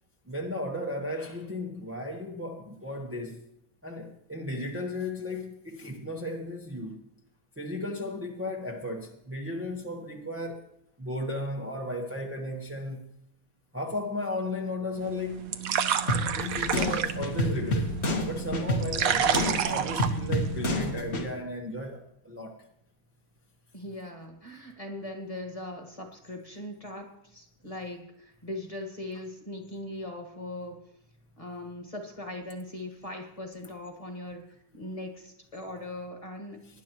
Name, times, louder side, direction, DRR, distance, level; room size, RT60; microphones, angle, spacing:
voice 1, 0.3-3.4 3.8-7.0 7.6-10.7 11.0-13.1 13.7-15.5 16.3-18.0 18.2-22.6, left 1 dB, 15° right, 0.5 m, -35 dB
sound 1, 15.0-20.9, right 8 dB, 70° right, 0.8 m, -30 dB
sound 2, 16.1-21.3, left 1 dB, 40° left, 1.3 m, -30 dB
voice 2, 23.7-30.8 31.4-34.4 34.7-36.6, left 1 dB, 20° left, 1.4 m, -40 dB
19.5 x 10.5 x 3.0 m
omnidirectional pair, 2.2 m